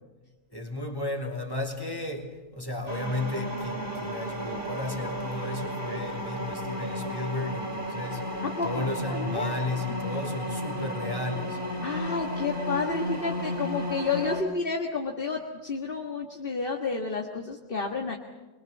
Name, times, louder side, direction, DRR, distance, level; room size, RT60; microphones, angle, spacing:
voice 1, 0.5-11.6, left 2 dB, 15° left, 2 dB, 2.9 m, -34 dB
sound 1, 2.9-14.4, equal, 40° right, 3.5 m, -33 dB
voice 2, 8.4-9.9 11.8-18.2, left 4 dB, 40° left, 2 dB, 1.7 m, -31 dB
24.5 x 22.0 x 7.2 m, 1.2 s
omnidirectional pair, 1.5 m